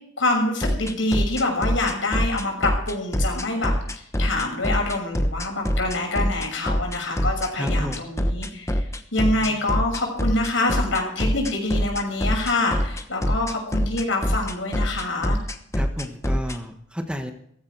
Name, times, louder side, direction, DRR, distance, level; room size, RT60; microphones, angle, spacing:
voice 1, 0.2-3.7 4.2-8.8 9.1-15.4, left 2 dB, 85° left, 1 dB, 6.4 m, -25 dB
sound 1, 0.6-16.6, equal, 15° left, 1.1 m, -24 dB
voice 2, 7.5-8.0 9.2-9.6 15.7-17.3, equal, 5° right, 6 dB, 1.4 m, -32 dB
16.5 x 15.0 x 4.7 m, 0.68 s
head